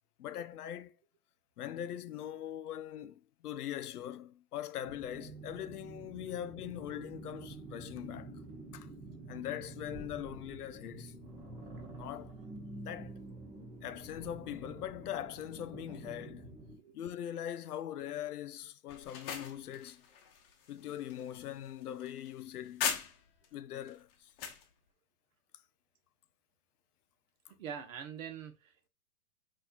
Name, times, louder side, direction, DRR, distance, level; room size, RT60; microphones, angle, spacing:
voice 1, 0.2-0.9 1.6-8.4 8.7-8.9 9.3-11.2 11.9-12.3 12.8-13.1 13.8-16.5 16.9-20.0 20.7-23.0 23.5-24.3, left 11 dB, 90° left, 0.6 m, -41 dB
sound 1, 4.8-16.8, right 2 dB, 10° right, 0.5 m, -48 dB
sound 2, 18.9-23.5 23.9-24.7, left 7 dB, 40° left, 0.7 m, -40 dB
voice 2, 27.5-28.9, right 7 dB, 60° right, 1.0 m, -44 dB
4.3 x 2.7 x 2.3 m
hypercardioid pair, 135°, 44 cm